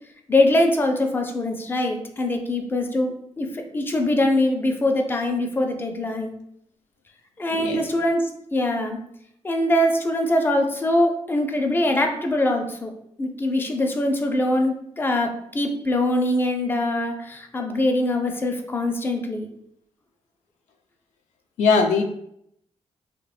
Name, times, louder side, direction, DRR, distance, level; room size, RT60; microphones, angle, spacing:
voice 1, 0.3-6.3 7.4-9.0 9.4-12.9 13.2-19.5, left 1 dB, 15° left, 3 dB, 0.4 m, -23 dB
voice 2, 7.5-7.8 21.6-22.0, left 4 dB, 90° left, 3 dB, 0.4 m, -20 dB
3.1 x 2.1 x 2.3 m, 0.73 s
cardioid pair, 80°, 12 cm